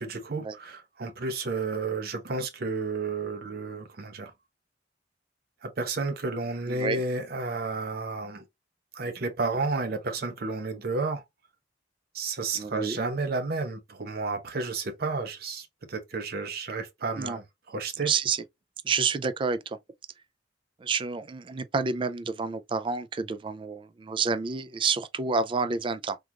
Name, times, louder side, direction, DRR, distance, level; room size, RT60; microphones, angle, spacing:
voice 1, 0.0-4.3 5.6-8.4 8.9-11.2 12.1-18.1, right 3 dB, 55° right, 0.7 m, -31 dB
voice 2, 6.7-7.0 12.5-13.0 17.2-17.4 18.0-18.4 18.8-19.8 20.8-26.2, right 5 dB, 30° right, 0.3 m, -29 dB
3.7 x 2.4 x 2.8 m
head